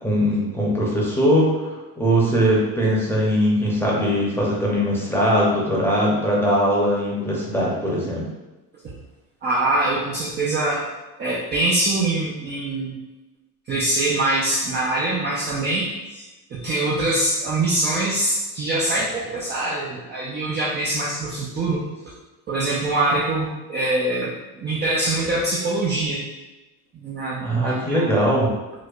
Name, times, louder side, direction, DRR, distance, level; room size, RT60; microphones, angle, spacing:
voice 1, 0.0-1.6 2.0-8.3 27.4-28.5, equal, 5° left, -4 dB, 0.7 m, -20 dB
voice 2, 9.4-10.8 11.2-12.9 13.7-21.8 22.5-26.2 26.9-28.1, right 2 dB, 25° right, -5 dB, 0.4 m, -24 dB
4.6 x 2.1 x 2.4 m, 1.1 s
supercardioid pair, 115°, 47 cm